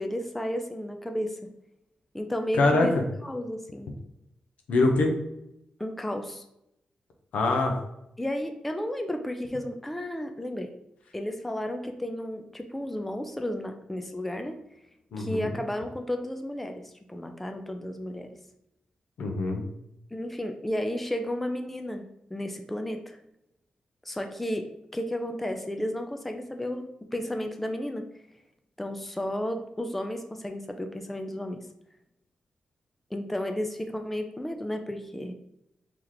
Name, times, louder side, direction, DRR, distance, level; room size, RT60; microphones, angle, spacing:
voice 1, 0.0-1.4 2.1-3.9 5.8-6.4 8.2-10.7 11.1-14.6 15.2-16.8 17.1-18.3 20.1-22.0 22.3-23.2 24.1-26.8 27.1-28.0 28.8-31.6 33.1-35.3, left 1 dB, 5° left, 5 dB, 0.3 m, -33 dB
voice 2, 2.5-3.0 4.7-5.1 7.3-7.7 15.1-15.5 19.2-19.6, left 2 dB, 85° left, 3 dB, 0.7 m, -23 dB
3.2 x 2.9 x 3.9 m, 0.81 s
wide cardioid pair, 160°, 2 cm